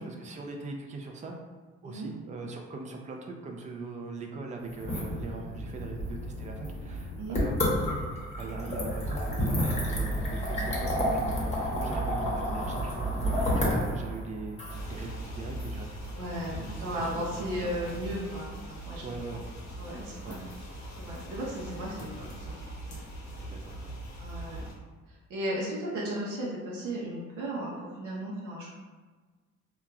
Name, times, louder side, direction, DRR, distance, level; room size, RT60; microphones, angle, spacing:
voice 1, 0.0-1.4 1.8-8.0 8.4-13.1 13.6-14.6 14.9-16.0 16.7-17.2 17.6-18.0 19.0-19.4 20.2-20.4 21.9-22.1 23.5-24.1 24.5-24.6, right 3 dB, 25° right, 2 dB, 0.4 m, -41 dB
sound 1, 4.7-16.6, equal, 20° left, 0.8 m, -31 dB
sound 2, 14.7-24.7, right 1 dB, 65° left, 0.8 m, -41 dB
voice 2, 16.1-19.0 19.3-19.4 19.8-20.4 21.0-22.6 22.9-23.0 23.3-23.5 24.2-24.6 25.1-28.7, right 1 dB, 80° right, -5 dB, 0.7 m, -35 dB
2.8 x 2.3 x 2.3 m, 1.4 s
cardioid pair, 90°, 30 cm